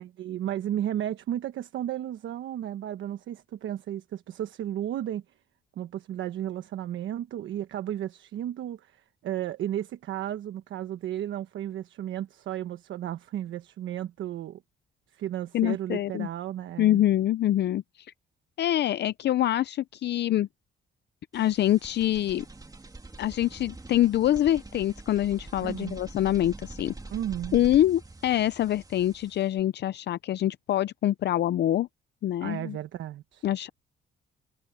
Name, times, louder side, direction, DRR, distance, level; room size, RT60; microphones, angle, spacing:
voice 1, 0.0-5.2 5.8-14.6 15.1-17.0 25.6-26.0 27.1-27.6 32.4-33.4, right 11 dB, 75° right, 1.1 m, -34 dB
voice 2, 15.5-16.3 16.8-18.1 18.6-20.5 21.3-22.4 23.2-26.9 27.5-31.9 32.2-32.8 33.4-33.7, left 12 dB, 60° left, 0.5 m, -25 dB
sound 1, 21.3-29.6, right 2 dB, 20° right, 2.9 m, -44 dB
cardioid pair, 90°, 20 cm